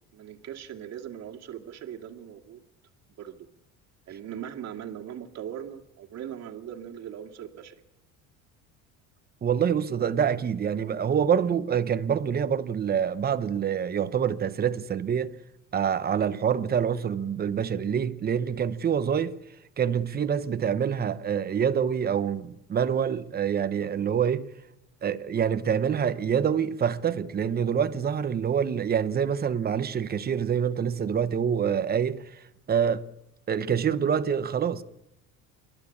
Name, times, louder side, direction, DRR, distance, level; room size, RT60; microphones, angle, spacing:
voice 1, 0.0-2.6 3.2-3.5 4.1-7.7, right 9 dB, 50° right, 2.3 m, -40 dB
voice 2, 9.4-15.3 15.7-19.4 19.8-24.5 25.0-33.0 33.5-34.8, right 8 dB, 30° right, 0.9 m, -26 dB
29.0 x 12.0 x 8.6 m
cardioid pair, 130°, 33 cm